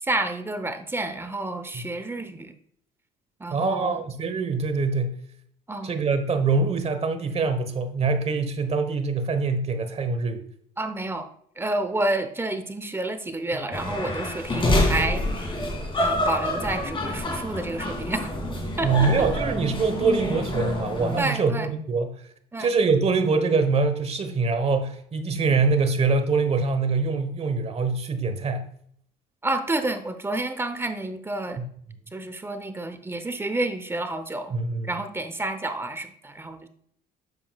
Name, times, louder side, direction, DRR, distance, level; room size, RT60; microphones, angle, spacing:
voice 1, 0.0-2.6 3.4-4.0 5.7-6.0 10.8-11.3 11.6-15.6 16.0-18.3 18.8-19.3 21.2-21.7 22.5-22.7 29.4-31.6 32.1-34.5 34.8-36.7, right 2 dB, 15° right, 9 dB, 0.8 m, -29 dB
voice 2, 3.5-5.2 5.8-10.4 18.8-22.1 22.6-28.7 31.6-31.7 34.5-34.9, right 4 dB, 35° right, 8 dB, 1.2 m, -24 dB
sound 1, 13.7-21.2, left 1 dB, 30° left, 2.5 m, -27 dB
9.7 x 7.0 x 2.4 m, 0.65 s
cardioid pair, 110°, 17 cm